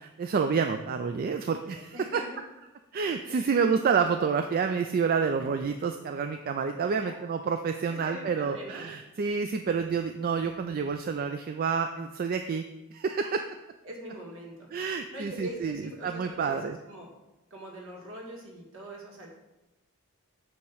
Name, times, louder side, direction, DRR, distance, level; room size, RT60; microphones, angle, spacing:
voice 1, 0.0-2.2 2.9-12.6 12.9-13.4 14.7-16.8, right 5 dB, 45° right, 6 dB, 0.3 m, -28 dB
voice 2, 1.9-2.3 3.3-3.5 6.8-7.2 7.9-8.9 13.8-14.7 15.1-16.6 16.9-17.1 17.5-19.3, equal, 65° right, -1 dB, 1.9 m, -42 dB
8.4 x 2.9 x 6.3 m, 1.0 s
head